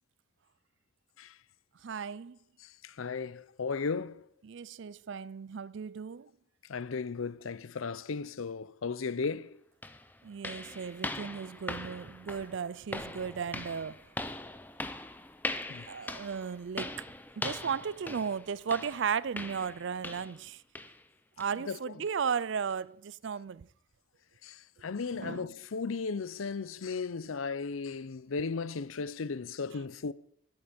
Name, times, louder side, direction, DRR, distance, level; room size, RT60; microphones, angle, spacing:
voice 1, 1.8-2.4 4.4-6.3 10.2-14.0 15.9-17.1 17.4-20.6 21.4-23.7 25.2-25.5, right 6 dB, 65° right, 0.4 m, -35 dB
voice 2, 2.6-4.3 6.7-9.6 15.7-15.9 21.5-22.1 24.4-30.1, left 4 dB, 85° left, 0.6 m, -36 dB
sound 1, 9.2-9.3 9.8-20.5 20.8-21.0 21.4-21.6 22.1-22.2 22.7-22.8, left 2 dB, 10° left, 0.7 m, -41 dB
10.5 x 9.5 x 8.6 m
head